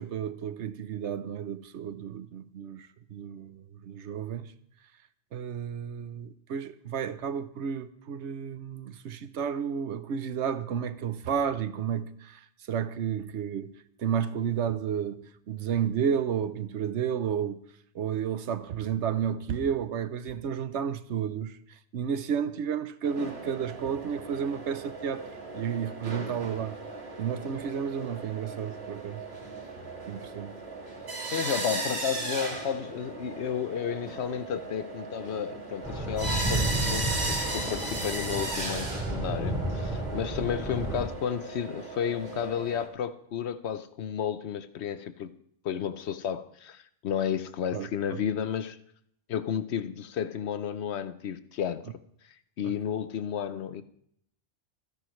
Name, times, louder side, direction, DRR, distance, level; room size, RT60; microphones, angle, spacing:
voice 1, 0.0-4.5 5.3-17.6 17.9-25.3 25.5-26.8 27.2-29.2 30.0-30.6 47.7-48.2 52.6-52.7, right 8 dB, 80° right, 1.1 m, -32 dB
sound 1, 23.0-42.9, right 2 dB, 65° right, 2.3 m, -37 dB
voice 2, 31.3-45.3 45.6-48.8 49.3-52.0 52.6-53.8, left 8 dB, 75° left, 1.0 m, -32 dB
sound 2, 35.8-41.0, right 1 dB, 5° right, 4.6 m, -32 dB
26.0 x 10.5 x 3.1 m
omnidirectional pair, 1.2 m